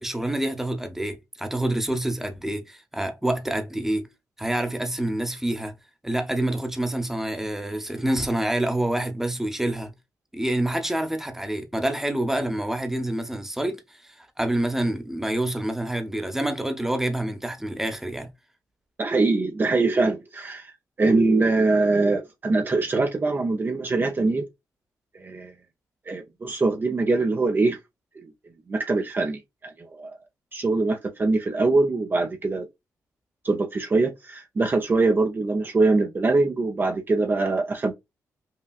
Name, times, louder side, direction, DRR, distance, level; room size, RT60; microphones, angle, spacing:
voice 1, 0.0-4.1 4.4-5.7 6.0-9.9 10.3-18.3, right 1 dB, 5° right, 0.9 m, -27 dB
voice 2, 19.0-20.7 21.0-24.4 25.1-25.5 26.1-27.8 28.2-28.3 28.7-30.2 30.5-32.7 33.4-37.9, right 3 dB, 35° right, 0.6 m, -23 dB
5.6 x 2.3 x 2.4 m
cardioid pair, 85°, 6 cm